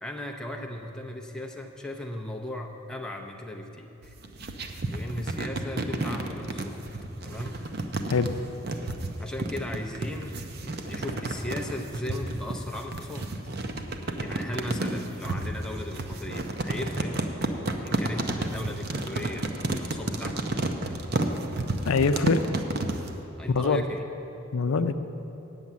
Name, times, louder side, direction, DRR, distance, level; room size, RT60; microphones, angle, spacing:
voice 1, 0.0-4.1 4.9-6.8 7.2-7.7 9.2-13.4 14.2-17.2 17.8-20.5 23.4-24.0, left 1 dB, 5° left, 0 dB, 0.7 m, -37 dB
sound 1, 4.0-23.1, right 2 dB, 50° right, 0.7 m, -31 dB
voice 2, 21.8-22.4 23.5-23.8 24.5-24.9, left 4 dB, 90° left, 9 dB, 0.5 m, -23 dB
9.3 x 7.0 x 8.5 m, 3.0 s
head